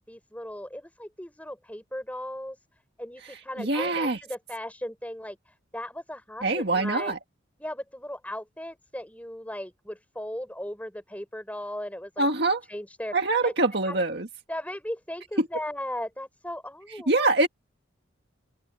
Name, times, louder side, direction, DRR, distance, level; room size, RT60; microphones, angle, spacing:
voice 1, 0.0-2.6 3.0-7.2 7.6-12.3 12.7-13.1 13.4-13.5 13.8-14.0 14.5-17.5, left 1 dB, 10° left, 6.8 m, -37 dB
voice 2, 3.6-4.2 6.4-7.2 12.2-12.6 13.1-14.3 15.4-15.5 17.1-17.5, right 2 dB, 60° right, 1.9 m, -24 dB
open air
head